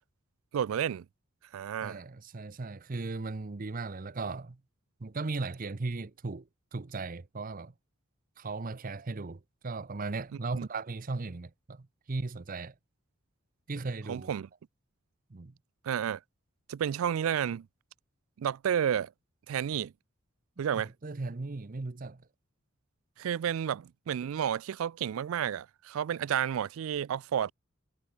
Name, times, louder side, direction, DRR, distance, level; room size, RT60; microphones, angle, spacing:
voice 1, 0.5-1.1 1.5-2.0 10.6-10.7 14.1-14.5 15.8-16.2 16.7-17.7 18.4-19.1 19.5-19.9 20.6-20.9 23.2-27.5, right 9 dB, 70° right, 0.3 m, -31 dB
voice 2, 1.8-4.6 5.0-7.7 8.4-12.7 13.7-14.4 15.3-15.5 20.6-22.2, right 3 dB, 40° right, 0.6 m, -37 dB
head